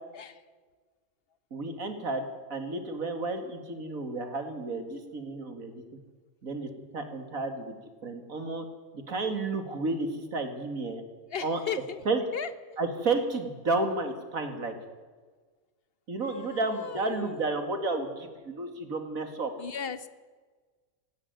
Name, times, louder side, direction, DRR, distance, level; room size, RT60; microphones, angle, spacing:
voice 1, 0.1-0.4 11.3-12.0 12.3-12.8 16.2-17.4 19.6-20.1, left 7 dB, 45° left, 13 dB, 1.2 m, -37 dB
voice 2, 1.5-2.2 2.5-5.8 6.4-7.7 8.0-8.6 8.9-11.0 11.4-11.6 12.1-12.2 12.8-14.8 16.1-19.5, right 3 dB, 75° right, 7 dB, 2.8 m, -31 dB
17.5 x 16.5 x 9.5 m, 1.4 s
omnidirectional pair, 1.5 m